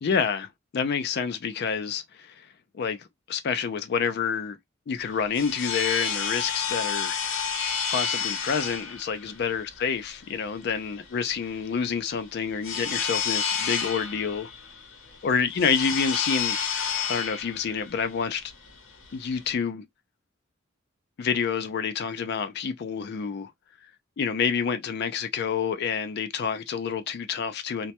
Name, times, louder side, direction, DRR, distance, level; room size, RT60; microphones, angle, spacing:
voice 1, 0.0-2.4 2.7-4.6 4.9-7.2 7.9-14.5 15.2-16.6 17.1-18.4 19.1-19.8 21.2-23.5 24.2-27.9, left 6 dB, 55° left, 0.4 m, -28 dB
sound 1, 5.0-19.6, left 6 dB, 90° left, 0.8 m, -31 dB
2.1 x 2.1 x 2.7 m
head